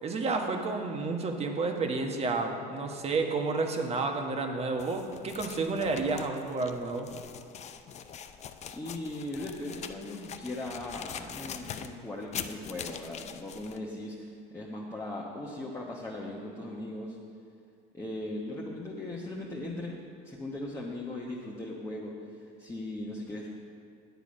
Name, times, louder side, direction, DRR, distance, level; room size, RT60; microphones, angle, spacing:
voice 1, 0.0-7.1, right 3 dB, 30° right, 4 dB, 1.3 m, -30 dB
sound 1, 4.8-13.8, left 8 dB, 35° left, 0.6 m, -43 dB
voice 2, 8.7-17.2 17.9-22.2 22.6-23.5, left 1 dB, 15° left, -4 dB, 1.2 m, -38 dB
9.2 x 8.2 x 5.2 m, 2.4 s
supercardioid pair, 100°, 20 cm